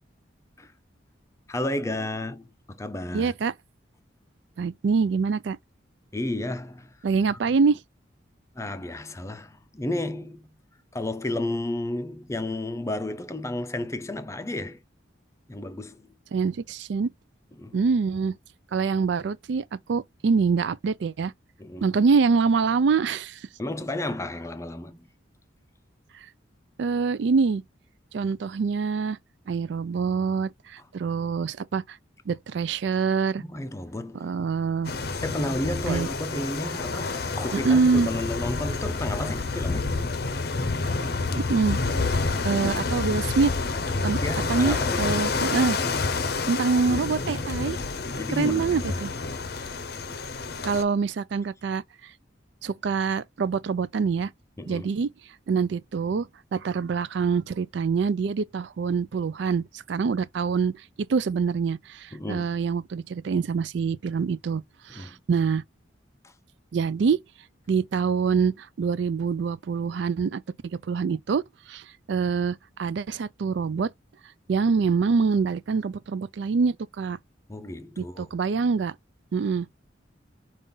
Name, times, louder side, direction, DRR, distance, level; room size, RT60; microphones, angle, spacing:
voice 1, 1.5-3.3 6.1-6.9 8.5-10.5 10.9-14.8 15.5-16.1 17.6-17.8 21.6-21.9 23.6-25.1 33.4-34.3 35.1-39.9 40.5-40.7 44.2-45.5 48.2-49.0 54.6-55.0 62.1-62.5 64.9-65.2 66.2-66.3 77.5-78.3, left 1 dB, 15° left, 0.5 m, -32 dB
voice 2, 3.1-3.5 4.6-5.6 7.0-7.8 16.3-17.1 17.7-18.3 18.7-21.3 21.8-23.5 26.8-27.6 28.1-29.2 29.5-32.0 32.3-33.4 34.1-34.9 35.9-36.1 37.5-38.1 41.4-41.8 42.4-43.5 44.0-44.2 44.5-45.8 46.5-47.8 48.3-49.1 50.6-52.1 52.6-54.3 54.7-55.1 55.5-60.7 61.0-65.6 66.7-67.2 67.7-71.4 71.7-73.9 74.5-77.2 78.0-78.9 79.3-79.7, right 5 dB, 65° right, 0.4 m, -25 dB
sound 1, 34.8-50.8, left 3 dB, 55° left, 0.6 m, -28 dB
5.3 x 2.5 x 3.9 m
head